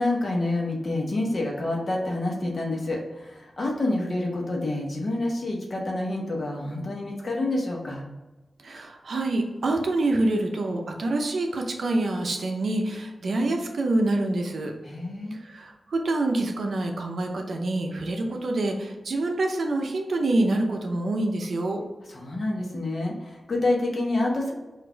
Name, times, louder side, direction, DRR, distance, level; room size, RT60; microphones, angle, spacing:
voice 1, 0.0-8.0 14.8-15.4 22.1-24.5, left 2 dB, 45° left, -1 dB, 1.0 m, -28 dB
voice 2, 8.6-14.7 15.4-21.8, right 2 dB, 65° right, 3 dB, 0.6 m, -26 dB
4.1 x 2.6 x 4.4 m, 1.1 s
wide cardioid pair, 155°, 0 cm